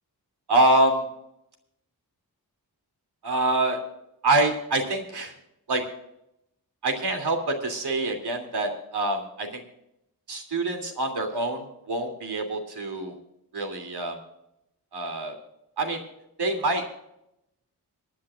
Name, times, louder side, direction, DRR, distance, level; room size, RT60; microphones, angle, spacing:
voice 1, 0.5-1.1 3.2-3.8 4.2-5.3 5.7-5.8 6.8-9.6 10.3-13.1 13.5-14.2 14.9-15.4 15.8-16.0 16.4-16.8, right 2 dB, 80° right, 4 dB, 3.0 m, -25 dB
26.0 x 10.5 x 2.5 m, 0.81 s
wide cardioid pair, 130°, 39 cm